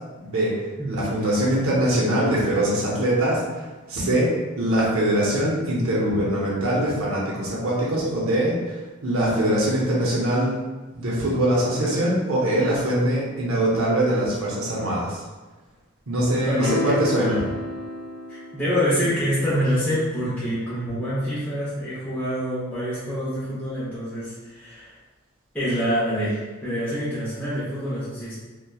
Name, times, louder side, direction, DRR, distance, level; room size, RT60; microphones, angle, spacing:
voice 1, 0.9-10.6 10.9-15.2 16.1-17.4, right 1 dB, 75° right, -5 dB, 0.7 m, -23 dB
voice 2, 16.5-17.4 18.3-25.0 25.5-28.3, equal, 5° left, -11 dB, 0.6 m, -26 dB
sound 1, 16.6-19.0, left 2 dB, 80° left, 0.5 m, -30 dB
2.8 x 2.2 x 2.2 m, 1.2 s
head